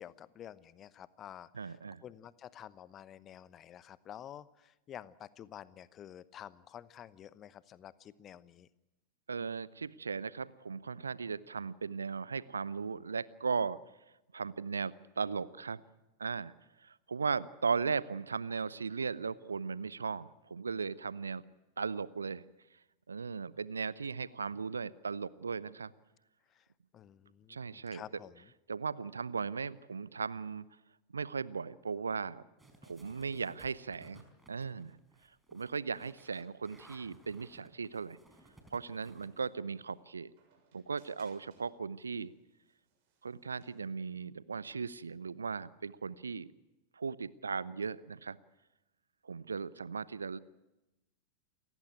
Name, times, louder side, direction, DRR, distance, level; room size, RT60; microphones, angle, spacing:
voice 1, 0.0-8.7 26.5-26.6 26.9-28.5, left 10 dB, 30° left, 18 dB, 0.9 m, -50 dB
voice 2, 1.5-2.0 9.3-13.8 14.3-15.8 16.2-16.5 16.8-21.4 21.8-22.4 23.1-25.9 27.5-28.0 28.7-30.6 31.1-32.4 32.8-35.0 35.5-38.2 38.7-40.3 40.7-42.3 43.2-46.5 47.0-48.4 49.2-50.4, right 5 dB, 75° right, 20 dB, 0.7 m, -37 dB
sound 1, 32.6-39.5, right 2 dB, 10° right, 4.5 m, -60 dB
sound 2, 35.0-43.9, right 6 dB, 45° right, 7.1 m, -71 dB
28.5 x 15.5 x 9.3 m, 1.0 s
figure-of-eight pair, 90°, 0 cm